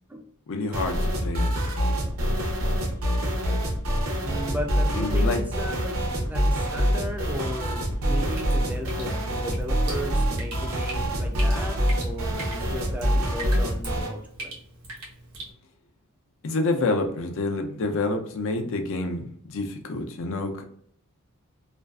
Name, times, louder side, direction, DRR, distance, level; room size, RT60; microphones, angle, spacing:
voice 1, 0.5-1.5 4.9-5.4 16.4-20.6, left 2 dB, 65° left, 0.4 m, -28 dB
sound 1, 0.7-14.1, equal, 65° right, 0.6 m, -25 dB
voice 2, 4.2-5.9 6.3-14.6, equal, 5° right, 0.3 m, -35 dB
Drip, 8.0-15.5, right 2 dB, 85° right, 1.0 m, -42 dB
2.5 x 2.3 x 2.2 m
head